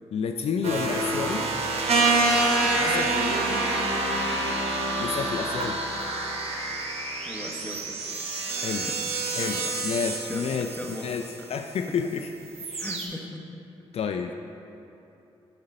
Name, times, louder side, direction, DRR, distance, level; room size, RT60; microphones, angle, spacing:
voice 1, 0.1-1.5 2.7-3.1 5.0-5.8 8.5-8.9 9.3-11.2 11.5-12.3 12.7-12.9 13.9-14.3, left 6 dB, 60° left, 5 dB, 0.4 m, -30 dB
sound 1, 0.6-11.4 11.8-12.2 12.5-13.1, right 2 dB, 60° right, 1.1 m, -27 dB
voice 2, 2.6-3.7 7.2-8.0 8.6-10.0 10.3-11.1 11.9-12.0 12.8-13.5, left 1 dB, 15° left, 2 dB, 1.0 m, -38 dB
9.4 x 3.9 x 5.3 m, 2.8 s
cardioid pair, 65°, 11 cm